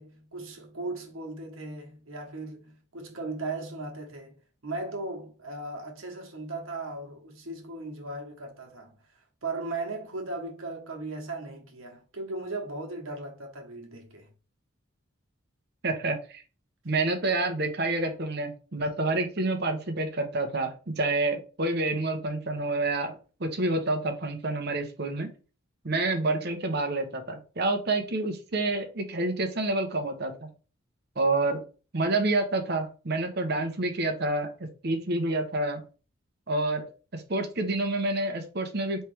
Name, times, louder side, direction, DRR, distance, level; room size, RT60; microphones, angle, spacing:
voice 1, 0.0-4.4 4.6-9.0 9.4-14.3, right 2 dB, 75° right, 1.3 m, -37 dB
voice 2, 15.8-16.4 16.8-25.3 25.8-30.5 31.2-31.6 31.9-34.5 34.8-35.8 36.5-36.9 37.1-39.0, right 2 dB, 50° right, 0.9 m, -28 dB
4.4 x 3.3 x 3.4 m
head